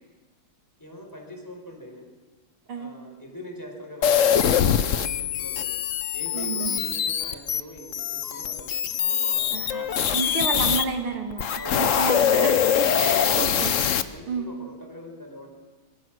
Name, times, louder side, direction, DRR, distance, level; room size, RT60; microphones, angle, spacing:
voice 1, 0.8-2.1 2.7-5.7 6.1-10.2 11.5-12.1 12.8-13.6 14.0-15.5, equal, 10° left, 2 dB, 4.9 m, -42 dB
sound 1, 4.0-10.9 11.3-14.0, left 8 dB, 55° left, 0.8 m, -23 dB
voice 2, 6.3-6.8 9.5-9.8 10.1-13.7 14.3-14.5, right 5 dB, 75° right, 4 dB, 2.9 m, -30 dB
26.0 x 24.5 x 6.3 m, 1.3 s
omnidirectional pair, 2.3 m